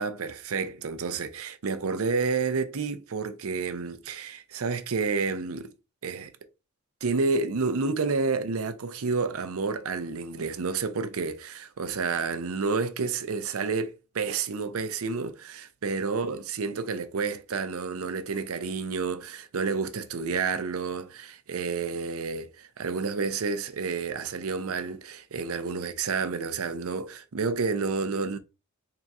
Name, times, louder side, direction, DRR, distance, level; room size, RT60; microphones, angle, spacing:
voice 1, 0.0-5.7 6.0-6.3 7.0-28.4, right 4 dB, 75° right, 0.6 m, -30 dB
3.8 x 2.4 x 4.1 m
head